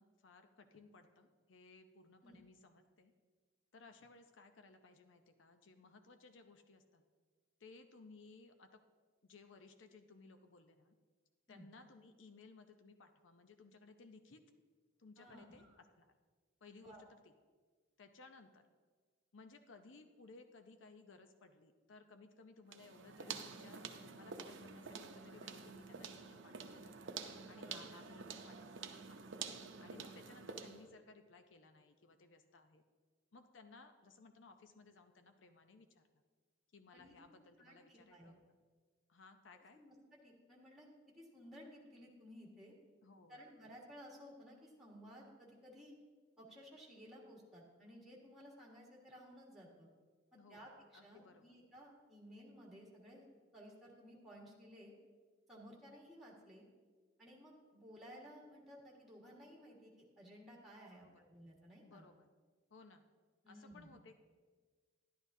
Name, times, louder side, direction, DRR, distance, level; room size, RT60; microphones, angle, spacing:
voice 1, 0.0-3.1 3.7-7.0 7.6-8.8 9.2-10.9 11.5-14.4 15.0-16.1 16.6-17.3 18.0-18.7 19.3-26.9 27.5-29.2 29.8-32.8 33.3-36.2 36.7-38.4 39.1-39.8 43.0-43.4 50.3-50.7 50.9-51.6 60.9-61.2 61.8-62.3 62.7-63.0 63.5-64.2, left 3 dB, 80° left, 7 dB, 0.6 m, -60 dB
voice 2, 15.2-15.8 16.8-17.0 27.4-27.9 36.9-37.1 37.6-38.3 39.7-40.9 41.1-42.7 43.3-45.9 46.4-49.9 50.3-53.2 53.5-54.9 55.5-56.7 57.2-62.1 63.4-63.9, equal, ahead, -3 dB, 1.6 m, -57 dB
sound 1, 22.7-30.9, right 5 dB, 75° right, 0.6 m, -49 dB
11.0 x 11.0 x 2.7 m, 1.5 s
head